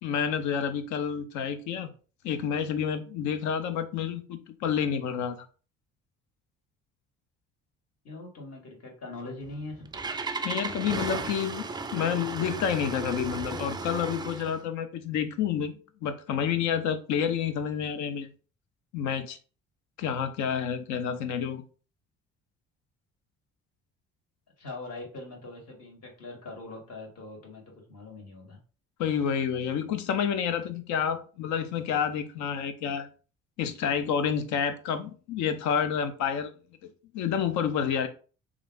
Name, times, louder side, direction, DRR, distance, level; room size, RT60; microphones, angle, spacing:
voice 1, 0.0-1.9 2.2-5.4 10.4-18.3 18.9-19.4 20.0-21.6 29.0-33.1 33.6-36.5 37.1-38.1, left 8 dB, 70° left, 0.6 m, -29 dB
voice 2, 8.0-9.9 24.6-28.6, left 2 dB, 55° left, 1.6 m, -42 dB
Engine starting, 9.4-14.6, right 3 dB, 15° right, 0.3 m, -35 dB
3.1 x 2.4 x 2.4 m
supercardioid pair, 65°, 30 cm